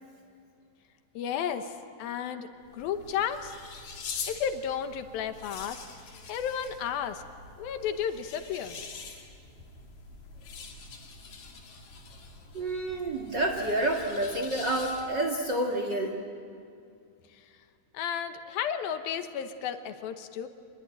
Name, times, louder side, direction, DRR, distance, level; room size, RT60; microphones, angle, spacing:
voice 1, 1.1-2.5 2.7-3.5 4.3-7.2 7.6-8.8 17.3-17.4 17.9-20.5, left 8 dB, 75° left, 8 dB, 2.8 m, -33 dB
sound 1, 2.6-15.3, left 5 dB, 50° left, 3.6 m, -45 dB
voice 2, 12.5-16.2, right 1 dB, 40° right, 3 dB, 1.9 m, -29 dB
26.0 x 21.5 x 9.0 m, 2.4 s
omnidirectional pair, 4.4 m